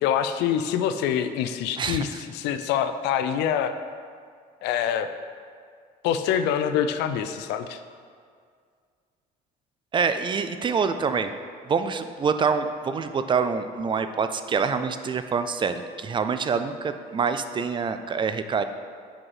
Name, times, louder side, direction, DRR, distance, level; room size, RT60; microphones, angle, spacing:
voice 1, 0.0-3.7 4.6-5.1 6.0-7.8, left 9 dB, 90° left, 10 dB, 0.4 m, -25 dB
voice 2, 9.9-11.3 11.7-18.6, right 5 dB, 30° right, 10 dB, 0.3 m, -26 dB
5.6 x 5.1 x 4.8 m, 2.1 s
cardioid pair, 110°, 17 cm